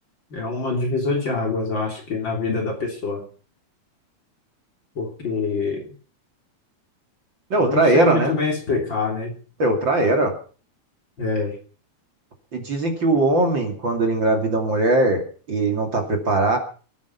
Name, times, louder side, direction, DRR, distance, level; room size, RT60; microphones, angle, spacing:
voice 1, 0.3-3.2 5.0-5.8 7.6-9.3 11.2-11.5, left 3 dB, 40° left, 2 dB, 3.8 m, -25 dB
voice 2, 7.5-8.4 9.6-10.3 12.5-16.6, right 2 dB, 40° right, 3 dB, 3.1 m, -20 dB
22.5 x 9.6 x 5.7 m, 0.41 s
omnidirectional pair, 3.4 m